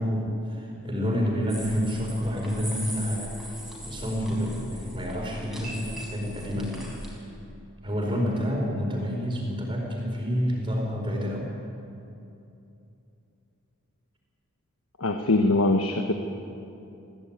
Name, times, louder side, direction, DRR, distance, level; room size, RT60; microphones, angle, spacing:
voice 1, 0.0-3.3 3.9-6.8 7.2-7.3 7.8-11.5, equal, 25° right, 0 dB, 4.7 m, -28 dB
sound 1, 1.5-7.2, equal, ahead, 5.0 m, -39 dB
voice 2, 15.0-16.1, left 2 dB, 85° left, 4 dB, 1.3 m, -22 dB
23.0 x 16.0 x 8.9 m, 2.7 s
head